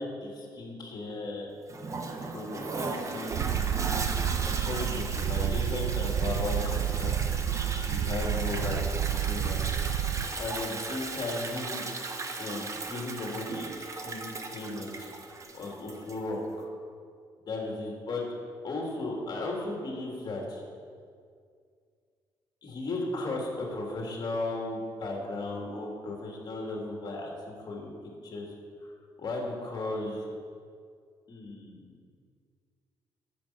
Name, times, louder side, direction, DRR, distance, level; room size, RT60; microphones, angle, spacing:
voice 1, 0.0-1.5 2.3-3.7 4.5-9.6 10.0-10.1 10.4-11.9 12.4-16.7 17.5-18.3 18.6-20.6 22.6-27.9 28.2-28.5 28.8-28.9 29.2-30.3 31.3-31.9, left 2 dB, 45° left, -1 dB, 3.1 m, -36 dB
Toilet flush, 1.7-16.3, right 3 dB, 35° right, 1.1 m, -37 dB
Purr, 3.3-10.3, right 10 dB, 70° right, 0.5 m, -30 dB
10.5 x 8.4 x 6.2 m, 2.1 s
cardioid pair, 100°, 10 cm